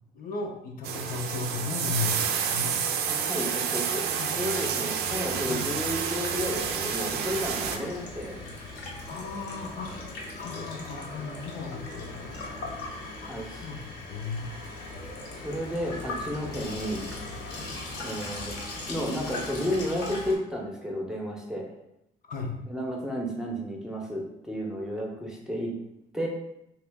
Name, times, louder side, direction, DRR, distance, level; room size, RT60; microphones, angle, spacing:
voice 1, 0.1-2.8 4.2-4.3 5.5-5.6 9.1-10.0 10.3-11.9 13.2-14.5 22.3-22.5, left 4 dB, 55° left, 1 dB, 0.6 m, -35 dB
sound 1, 0.8-7.8, right 7 dB, 70° right, 0.5 m, -29 dB
voice 2, 3.1-4.0 4.3-8.4 13.2-13.7 15.4-17.1 18.0-18.6 18.9-21.6 22.7-25.7 26.1-26.3, equal, 5° right, -1 dB, 0.7 m, -32 dB
Water tap faucet / Sink (filling or washing), 5.1-20.4, left 2 dB, 90° left, 0.9 m, -39 dB
3.0 x 2.9 x 3.4 m, 0.82 s
cardioid pair, 110°, 17 cm